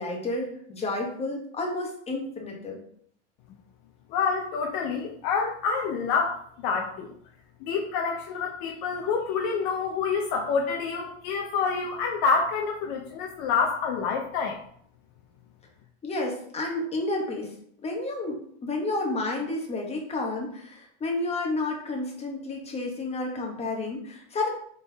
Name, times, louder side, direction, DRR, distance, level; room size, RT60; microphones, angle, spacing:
voice 1, 0.0-2.8 16.0-17.5 17.8-24.5, left 2 dB, 20° left, 0 dB, 1.1 m, -31 dB
voice 2, 4.1-7.1 7.6-14.6, left 5 dB, 50° left, 2 dB, 0.7 m, -27 dB
4.1 x 3.6 x 3.4 m, 0.63 s
supercardioid pair, 120°, 33 cm